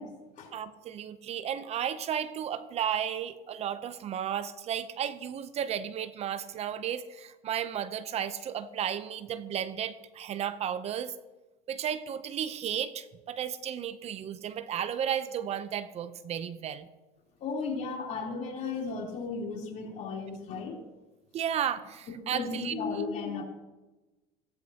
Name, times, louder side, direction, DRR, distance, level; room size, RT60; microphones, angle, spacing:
voice 1, 0.0-0.5 17.4-20.8 22.3-23.4, left 4 dB, 50° left, -1 dB, 3.5 m, -35 dB
voice 2, 0.5-11.1 11.7-16.9 21.3-22.7, right 9 dB, 40° right, 13 dB, 0.7 m, -33 dB
15.5 x 14.0 x 2.9 m, 1.1 s
supercardioid pair, 105°, 16 cm